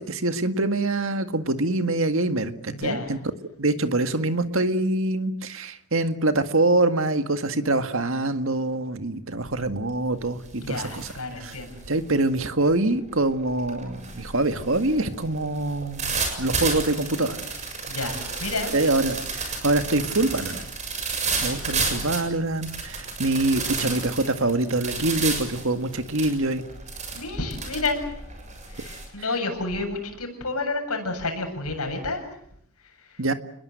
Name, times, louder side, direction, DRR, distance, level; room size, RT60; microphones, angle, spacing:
voice 1, 0.0-3.2 3.6-11.1 11.4-11.5 11.9-17.4 18.7-20.6 21.4-26.6 33.2-33.3, right 2 dB, 65° right, 9 dB, 1.9 m, -25 dB
voice 2, 2.7-3.1 10.6-11.7 17.9-18.7 27.1-28.0 28.7-32.2 33.1-33.2, left 3 dB, 85° left, 5 dB, 7.7 m, -30 dB
sound 1, 9.4-9.8 10.1-29.1, right 4 dB, 30° right, 7.1 m, -32 dB
29.0 x 21.5 x 7.9 m, 0.70 s
head